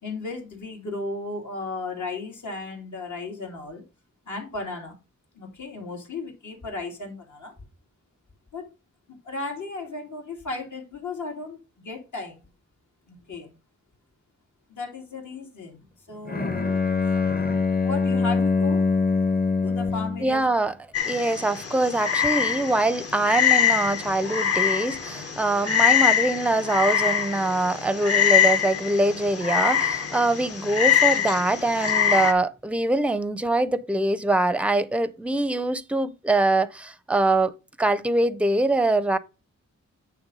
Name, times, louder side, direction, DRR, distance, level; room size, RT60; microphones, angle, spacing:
voice 1, 0.0-3.8 4.3-5.0 5.3-7.5 8.5-8.7 9.2-12.4 13.1-13.6 14.7-17.4 17.8-18.8 19.6-20.5, left 3 dB, 80° left, 2.7 m, -35 dB
Bowed string instrument, 16.3-20.3, left 4 dB, 30° left, 0.8 m, -23 dB
voice 2, 20.2-20.7 21.1-37.5 37.8-39.2, right 2 dB, 5° right, 0.5 m, -23 dB
Frog, 20.9-32.3, left 9 dB, 55° left, 1.0 m, -23 dB
9.1 x 3.5 x 5.3 m
wide cardioid pair, 125°, 29 cm